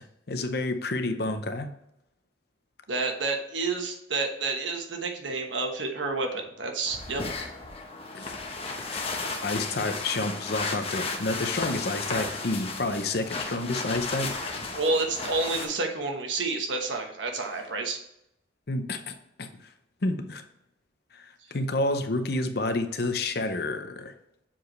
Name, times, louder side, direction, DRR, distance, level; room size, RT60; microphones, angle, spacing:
voice 1, 0.3-1.7 8.1-8.3 8.9-9.1 9.4-14.3 18.7-19.1 19.4-19.5 20.0-20.4 21.1-21.2 21.5-24.1, left 2 dB, 55° left, 8 dB, 0.7 m, -29 dB
voice 2, 2.9-7.2 14.7-18.0, right 3 dB, 85° right, 3 dB, 1.2 m, -29 dB
sound 1, 6.9-15.7, left 3 dB, 30° left, 0.9 m, -34 dB
7.3 x 4.7 x 3.2 m, 0.80 s
head